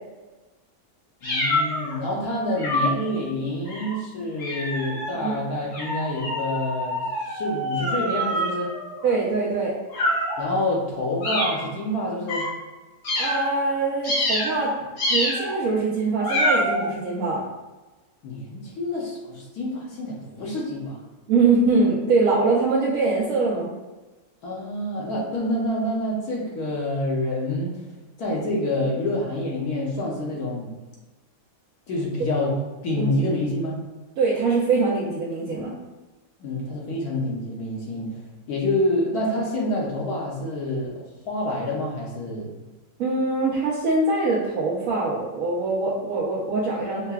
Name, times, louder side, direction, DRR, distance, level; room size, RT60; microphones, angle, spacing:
sound 1, 1.2-1.9 2.6-3.0 3.7-4.0 4.4-5.1 5.7-9.2 9.9-10.4 11.2-11.7 12.3-12.5 13.0-13.6 14.0-14.7 15.0-15.5 16.2-16.9, equal, 85° left, 2.2 m, -26 dB
voice 1, 1.2-8.7 10.4-12.5 18.2-21.0 24.4-27.8 28.2-30.7 31.9-32.5 32.8-33.8 36.4-38.1 38.5-42.5, left 1 dB, 65° left, -3 dB, 1.2 m, -27 dB
voice 2, 9.0-9.7 13.2-17.4 21.3-23.7 33.0-33.1 34.2-35.7 43.0-47.1, right 3 dB, 65° right, -6 dB, 0.9 m, -23 dB
5.5 x 2.1 x 2.3 m, 1.2 s
omnidirectional pair, 1.8 m